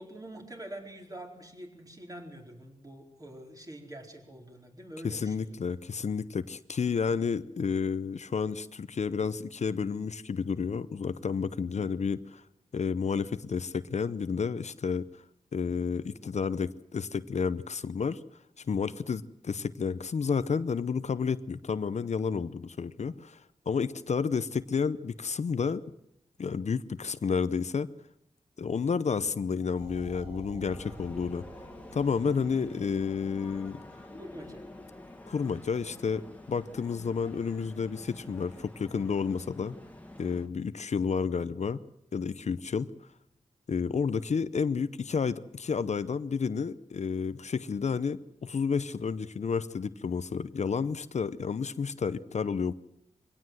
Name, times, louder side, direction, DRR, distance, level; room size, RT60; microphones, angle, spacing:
voice 1, 0.0-5.5 34.2-34.6, right 1 dB, 25° right, 1 dB, 4.4 m, -45 dB
voice 2, 5.0-12.4 12.7-15.2 15.5-18.2 18.6-25.8 26.4-27.9 28.6-31.4 31.9-33.8 35.3-39.8 40.2-41.8 42.1-42.9 43.7-52.7, left 5 dB, 60° left, 14 dB, 0.7 m, -31 dB
sound 1, 29.8-34.5, right 3 dB, 50° right, 6.8 m, -50 dB
sound 2, 30.7-40.5, left 1 dB, 10° left, 2.3 m, -48 dB
22.5 x 17.5 x 7.8 m, 0.80 s
wide cardioid pair, 100°, 13 cm